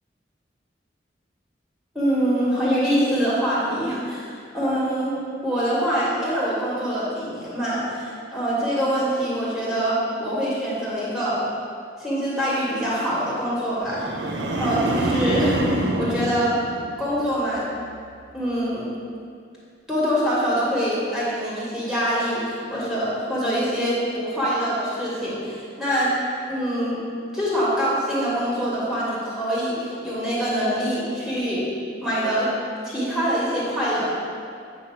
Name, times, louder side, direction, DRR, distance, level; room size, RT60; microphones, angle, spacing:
voice 1, 1.9-5.2 5.4-11.4 12.0-14.1 14.5-15.6 16.0-16.5 17.0-17.7 18.3-18.9 19.9-26.1 26.5-27.0 27.3-31.6 32.0-32.5 32.8-34.2, equal, ahead, -9 dB, 1.6 m, -24 dB
sound 1, 13.9-17.3 17.7-18.1, right 2 dB, 75° right, 0.6 m, -26 dB
7.8 x 2.8 x 5.8 m, 2.3 s
head